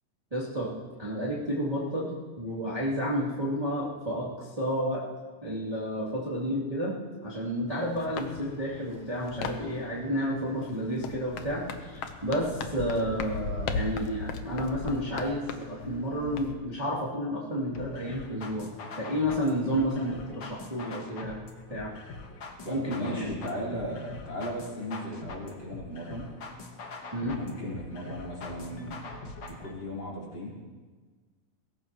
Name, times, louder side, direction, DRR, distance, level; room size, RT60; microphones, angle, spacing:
voice 1, 0.3-0.7 1.0-2.1 2.4-5.0 5.4-18.7 19.0-21.4 21.7-21.9 22.6-23.3 27.1-27.4, equal, 10° right, -8 dB, 2.3 m, -31 dB
sound 1, 7.7-16.6, left 5 dB, 75° left, 1.4 m, -38 dB
sound 2, 17.7-29.7, left 3 dB, 55° left, 1.3 m, -43 dB
voice 2, 22.6-26.3 27.3-29.1 29.5-30.5, equal, 35° left, -5 dB, 4.9 m, -36 dB
21.5 x 17.0 x 3.0 m, 1.4 s
omnidirectional pair, 3.9 m